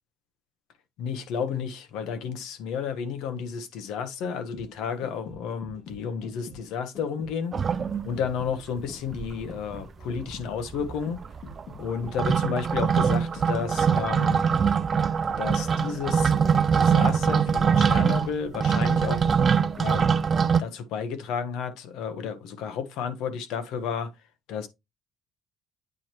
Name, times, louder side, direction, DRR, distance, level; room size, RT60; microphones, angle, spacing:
voice 1, 1.0-7.7 8.0-11.2 11.8-14.5 15.4-16.4 16.7-19.3 19.7-20.1 20.6-24.7, left 6 dB, 90° left, 1.2 m, -32 dB
sound 1, 4.3-20.2 20.5-20.6, left 3 dB, 55° left, 2.0 m, -45 dB
sound 2, 7.5-8.4 8.8-8.9 9.1-9.8 10.0-20.6, right 6 dB, 35° right, 0.3 m, -23 dB
8.7 x 4.4 x 3.1 m
cardioid pair, 125°, 0 cm